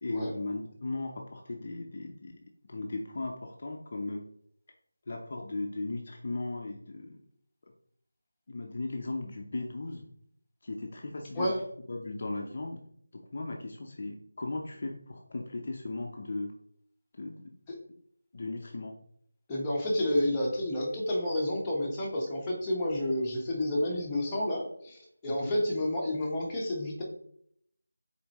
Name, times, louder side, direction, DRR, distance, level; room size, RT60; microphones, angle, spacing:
voice 1, 0.0-2.4 2.7-4.3 5.1-7.2 7.6-7.7 8.5-10.1 10.6-11.5 11.9-12.8 13.1-16.5 17.1-17.5 18.3-18.9 25.2-25.5, left 2 dB, 40° left, 1 dB, 0.8 m, -37 dB
voice 2, 19.5-27.0, left 1 dB, 10° left, -5 dB, 1.4 m, -30 dB
7.1 x 4.3 x 3.1 m, 0.67 s
figure-of-eight pair, 175°, 0 cm